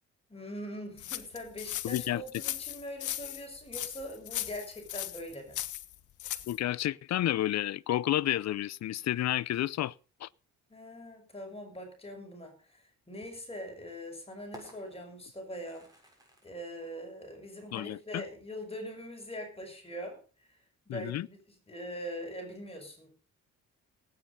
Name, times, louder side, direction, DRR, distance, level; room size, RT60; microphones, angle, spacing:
voice 1, 0.3-5.6 10.7-15.9 16.4-20.6 20.9-21.4 21.7-23.1, equal, 20° left, 6.1 m, -42 dB
sound 1, 1.0-6.6, left 13 dB, 75° left, 1.4 m, -38 dB
voice 2, 1.8-2.2 6.5-9.9 10.2-10.3 17.7-18.2 20.9-21.3, left 13 dB, 60° left, 0.6 m, -30 dB
sound 2, 5.8-20.6, right 1 dB, 10° right, 7.5 m, -61 dB
18.0 x 9.4 x 5.5 m
cardioid pair, 90°, 30 cm